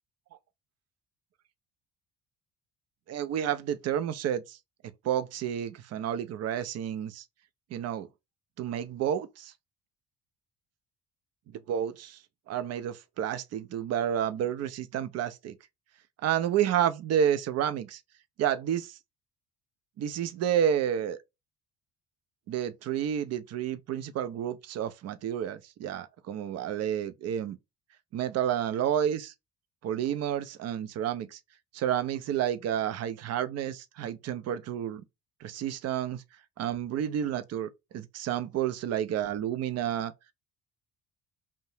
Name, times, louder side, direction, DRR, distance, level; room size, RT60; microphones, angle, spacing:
voice 1, 3.1-4.6 5.0-7.2 7.7-8.1 8.6-9.5 11.7-12.2 12.5-15.5 16.2-18.0 18.4-19.0 20.0-21.2 22.5-27.6 28.1-29.3 29.8-31.4 31.7-35.0 35.4-36.2 36.6-40.1, right 9 dB, 35° right, 0.4 m, -30 dB
2.6 x 2.1 x 3.0 m
hypercardioid pair, 50°, 47 cm